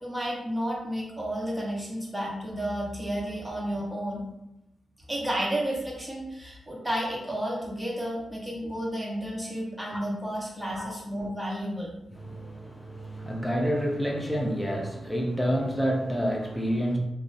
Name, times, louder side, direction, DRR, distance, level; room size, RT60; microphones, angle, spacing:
voice 1, 0.0-4.2 5.1-11.9, equal, 10° right, -4 dB, 0.9 m, -32 dB
voice 2, 10.8-11.3 12.1-17.0, equal, 10° left, -1 dB, 0.6 m, -29 dB
2.4 x 2.0 x 2.5 m, 0.88 s
cardioid pair, 50°, 0 cm